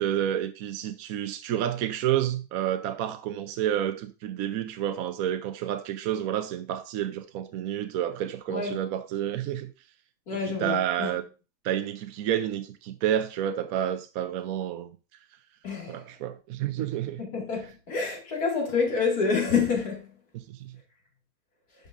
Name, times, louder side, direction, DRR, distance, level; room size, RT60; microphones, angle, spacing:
voice 1, 0.0-9.7 10.5-11.2 11.6-14.9 15.9-17.2 20.3-20.8, right 10 dB, 70° right, 1.0 m, -29 dB
voice 2, 10.3-11.1 15.6-16.0 17.2-20.1, left 5 dB, 75° left, 2.8 m, -27 dB
11.5 x 5.3 x 2.5 m
omnidirectional pair, 1.6 m